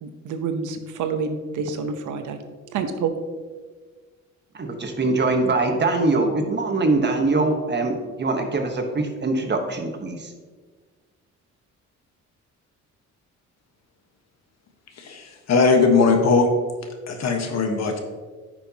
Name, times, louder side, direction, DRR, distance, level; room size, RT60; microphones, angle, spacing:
voice 1, 0.0-2.4 2.7-3.1, right 5 dB, 80° right, 7 dB, 0.9 m, -28 dB
voice 2, 4.5-10.3, right 3 dB, 35° right, 4 dB, 1.2 m, -23 dB
voice 3, 15.0-16.5 17.1-18.0, left 4 dB, 60° left, 4 dB, 1.3 m, -19 dB
9.9 x 6.1 x 2.9 m, 1.5 s
cardioid pair, 90°, 30 cm